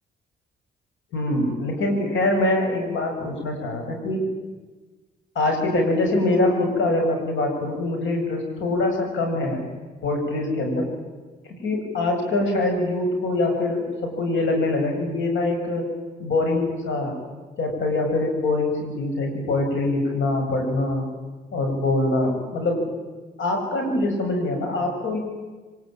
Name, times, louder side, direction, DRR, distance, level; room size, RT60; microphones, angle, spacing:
voice 1, 1.1-4.2 5.4-9.6 10.0-10.9 11.5-15.9 16.2-17.2 17.6-21.1 21.5-22.9 23.4-25.2, left 2 dB, 75° left, 3 dB, 7.2 m, -24 dB
23.5 x 21.0 x 9.0 m, 1.3 s
cardioid pair, 90°, 20 cm